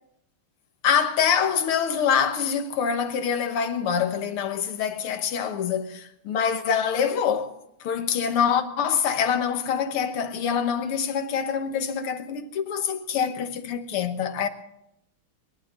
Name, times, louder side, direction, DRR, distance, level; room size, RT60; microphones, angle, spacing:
voice 1, 0.8-7.5 7.8-14.5, left 7 dB, 85° left, 2.1 m, -25 dB
22.5 x 11.5 x 5.3 m
omnidirectional pair, 2.3 m